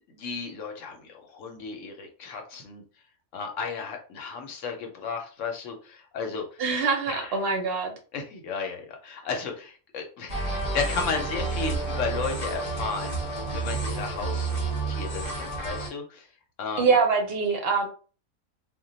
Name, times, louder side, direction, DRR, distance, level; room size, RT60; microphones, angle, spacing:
voice 1, 0.1-2.8 3.3-6.6 7.1-7.4 8.1-14.5 14.8-16.3 16.6-16.9, left 5 dB, 70° left, 4 dB, 0.9 m, -34 dB
voice 2, 6.6-7.9 16.8-17.9, right 5 dB, 60° right, 3 dB, 0.7 m, -24 dB
sound 1, 10.3-15.9, right 3 dB, 40° left, 0.6 m, -30 dB
2.2 x 2.1 x 3.8 m, 0.38 s
omnidirectional pair, 1.5 m